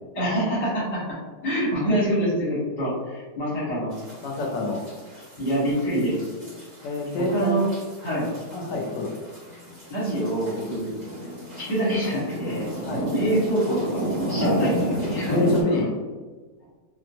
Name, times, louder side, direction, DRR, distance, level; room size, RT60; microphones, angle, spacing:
voice 1, 0.1-1.2 1.4-3.9 5.4-6.1 7.3-7.6 8.0-8.3 9.9-10.9 11.6-12.7 13.0-15.4 15.7-15.8, right 1 dB, 40° left, -9 dB, 1.3 m, -25 dB
sound 1, 3.9-15.6, equal, 35° right, 0.7 m, -33 dB
voice 2, 4.2-4.8 6.8-7.6 8.5-9.1 12.8-13.1 14.4-14.6 15.3-15.9, left 1 dB, 75° left, 0 dB, 1.2 m, -26 dB
2.9 x 2.8 x 2.6 m, 1.4 s
omnidirectional pair, 2.0 m